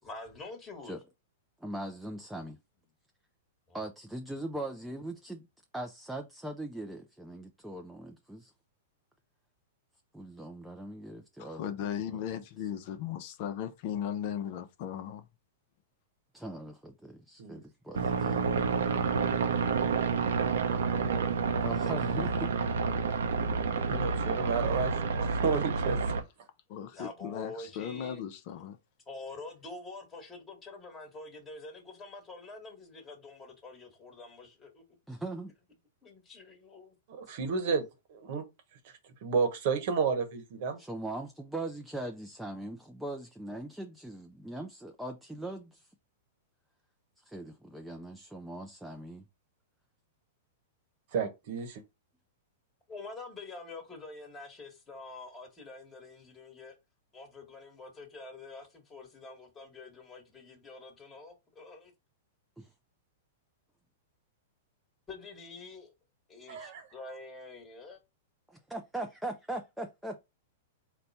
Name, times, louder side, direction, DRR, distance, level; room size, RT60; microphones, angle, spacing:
voice 1, 0.0-0.9 3.7-3.8 26.9-28.2 29.1-34.8 36.0-36.9 52.9-56.7 57.1-61.9 65.1-65.9 66.3-68.0, left 3 dB, 15° left, 1.3 m, -46 dB
voice 2, 1.6-2.6 3.7-5.5 5.7-8.5 10.1-11.6 12.1-12.2 16.3-18.4 21.6-22.6 23.1-23.2 35.1-35.5 40.8-45.9 47.2-49.3 62.6-62.7 68.5-70.2, right 1 dB, 5° right, 0.4 m, -40 dB
voice 3, 11.4-15.3 26.7-28.8, left 9 dB, 50° left, 0.6 m, -37 dB
sound 1, 17.9-26.2, right 5 dB, 85° right, 0.7 m, -29 dB
voice 4, 23.9-26.0 37.1-37.8 38.1-38.4 39.2-40.8 51.1-51.8 66.5-66.8, right 5 dB, 55° right, 1.0 m, -31 dB
4.1 x 2.2 x 4.0 m
hypercardioid pair, 135°, 0 cm